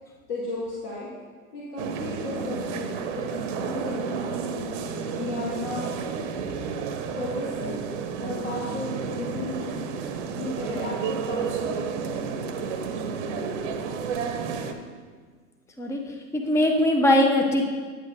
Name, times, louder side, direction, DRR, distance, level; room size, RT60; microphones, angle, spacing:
voice 1, 0.3-1.1 1.5-2.9 3.2-3.3 3.5-4.3 5.1-5.8 7.2-7.8 8.2-9.7 10.3-11.9, left 2 dB, 75° left, -7 dB, 2.0 m, -34 dB
sound 1, 1.8-14.7, right 5 dB, 50° right, 0.8 m, -31 dB
voice 2, 16.3-17.6, left 1 dB, 5° left, 2 dB, 0.6 m, -20 dB
9.1 x 8.8 x 2.7 m, 1.5 s
figure-of-eight pair, 100°, 47 cm